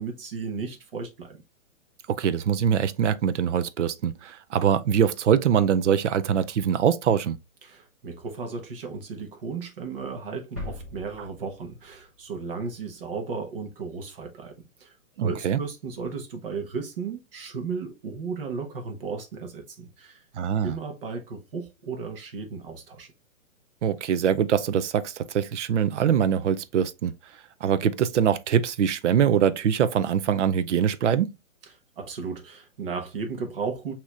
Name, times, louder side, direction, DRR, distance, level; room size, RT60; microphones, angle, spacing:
voice 1, 0.0-1.4 7.6-20.2 20.6-23.1 32.0-33.9, right 5 dB, 40° right, 1.1 m, -35 dB
voice 2, 2.1-7.4 15.2-15.6 20.3-20.8 23.8-27.1 27.6-31.4, right 8 dB, 60° right, 0.5 m, -23 dB
sound 1, 10.6-12.4 12.7-12.8, left 2 dB, 15° right, 0.5 m, -40 dB
6.2 x 2.9 x 2.4 m
hypercardioid pair, 165°, 41 cm